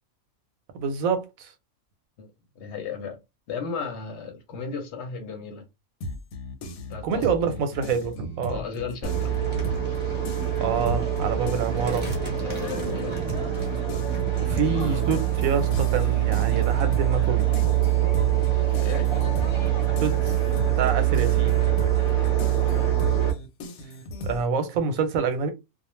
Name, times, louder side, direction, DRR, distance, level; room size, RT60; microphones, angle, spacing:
voice 1, 0.7-1.5 7.0-8.6 10.6-12.1 14.4-17.7 20.0-20.4 20.8-21.6 24.2-25.5, right 5 dB, 85° right, 1.0 m, -27 dB
voice 2, 2.2-3.2 3.5-5.6 6.9-7.6 8.5-9.3 12.4-13.2 14.4-15.1 18.7-19.1 22.1-22.9, left 5 dB, 65° left, 0.8 m, -36 dB
sound 1, 6.0-10.0 10.2-24.4, left 1 dB, 85° left, 1.1 m, -37 dB
sound 2, 9.0-23.3, right 12 dB, 25° right, 0.8 m, -24 dB
2.4 x 2.1 x 3.0 m
omnidirectional pair, 1.4 m